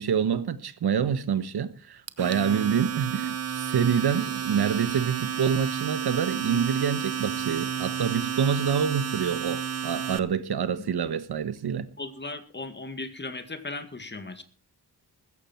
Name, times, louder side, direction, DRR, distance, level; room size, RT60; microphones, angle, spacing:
voice 1, 0.0-11.9, right 7 dB, 75° right, 1.3 m, -27 dB
Domestic sounds home sounds, 2.1-10.2, right 8 dB, 40° right, 0.9 m, -31 dB
voice 2, 12.0-14.4, left 3 dB, 25° left, 2.1 m, -37 dB
15.0 x 14.0 x 4.5 m
wide cardioid pair, 105°, 39 cm